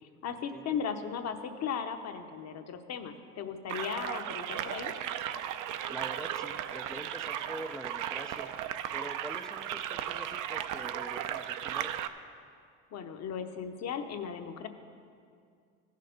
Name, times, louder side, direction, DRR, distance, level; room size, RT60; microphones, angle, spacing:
voice 1, 0.0-4.9 12.9-14.7, left 7 dB, 45° left, 7 dB, 0.9 m, -37 dB
sound 1, 3.7-12.1, right 10 dB, 55° right, 0.6 m, -36 dB
voice 2, 5.9-8.5 8.9-11.9, equal, ahead, 8 dB, 0.4 m, -45 dB
15.0 x 6.7 x 5.2 m, 2.3 s
supercardioid pair, 100°, 38 cm